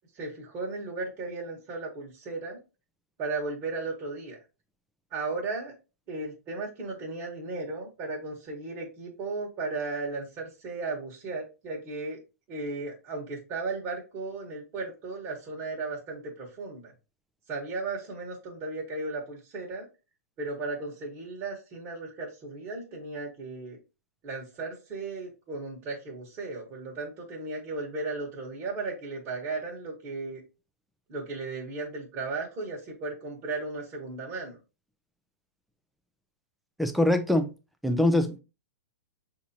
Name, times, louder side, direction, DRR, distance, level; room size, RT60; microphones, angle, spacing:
voice 1, 0.1-2.6 3.2-4.4 5.1-5.7 6.1-12.2 12.5-16.9 17.5-19.8 20.4-23.8 24.2-30.4 31.1-34.6, right 3 dB, 30° right, 1.4 m, -35 dB
voice 2, 36.8-37.5 37.8-38.4, left 1 dB, ahead, 0.6 m, -23 dB
5.9 x 2.8 x 2.8 m
hypercardioid pair, 115°, 9 cm